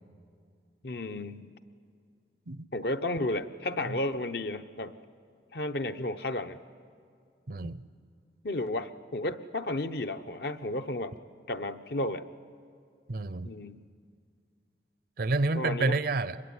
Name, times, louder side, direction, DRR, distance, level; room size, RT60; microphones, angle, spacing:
voice 1, 0.8-1.5 2.7-4.9 5.5-6.6 8.4-11.2 11.5-12.3 13.4-13.8 15.5-16.0, left 1 dB, 60° left, 8 dB, 0.8 m, -33 dB
voice 2, 7.5-7.8 13.1-13.5 15.2-16.4, right 3 dB, 55° right, 16 dB, 0.6 m, -29 dB
25.0 x 22.0 x 9.6 m, 2.2 s
head